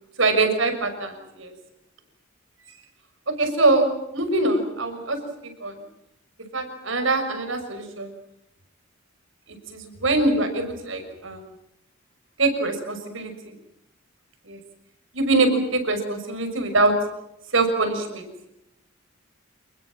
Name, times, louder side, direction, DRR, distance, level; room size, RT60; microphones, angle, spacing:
voice 1, 0.2-1.5 3.4-5.2 5.4-5.8 6.5-8.1 9.5-11.5 12.4-13.5 14.4-14.6 15.1-16.9 17.5-18.3, right 2 dB, 70° right, 7 dB, 6.3 m, -23 dB
29.0 x 21.0 x 7.6 m, 0.84 s
head